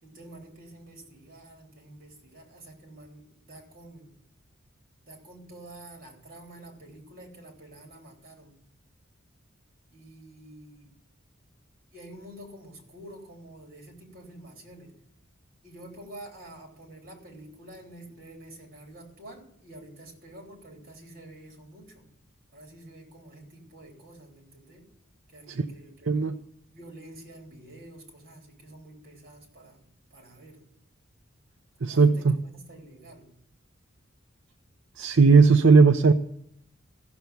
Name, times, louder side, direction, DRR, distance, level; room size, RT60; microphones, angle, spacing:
voice 1, 0.0-4.1 5.0-8.6 9.9-10.9 11.9-14.9 15.6-22.1 22.5-24.9 25.3-26.3 26.7-29.8 30.1-30.6 31.8-33.3, right 1 dB, 45° right, 1 dB, 3.7 m, -48 dB
voice 2, 31.8-32.4 35.0-36.1, right 4 dB, 65° right, 7 dB, 0.6 m, -17 dB
15.0 x 7.0 x 9.3 m, 0.69 s
head